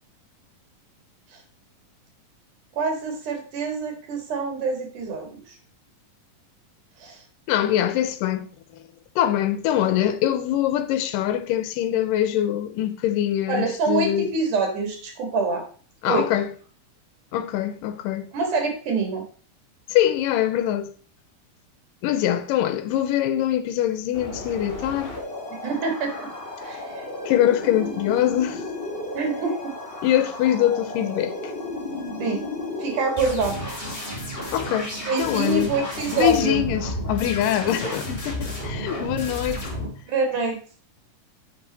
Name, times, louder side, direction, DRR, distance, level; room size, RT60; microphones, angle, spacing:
voice 1, 2.7-5.6 7.0-7.2 13.5-15.6 16.0-16.3 18.3-19.2 25.5-26.1 26.6-26.8 29.1-29.7 32.2-32.4 32.8-33.6 35.1-36.6 37.8-37.9 40.1-40.6, right 4 dB, 70° right, 3.3 m, -25 dB
voice 2, 7.5-8.5 9.2-14.3 16.0-16.5 17.3-18.3 19.9-20.9 22.0-25.1 27.2-28.6 30.0-31.5 34.5-35.7 36.1-39.7, left 11 dB, 85° left, 2.3 m, -23 dB
sound 1, 24.1-39.9, left 1 dB, 20° left, 1.8 m, -33 dB
7.6 x 6.1 x 4.0 m
omnidirectional pair, 3.8 m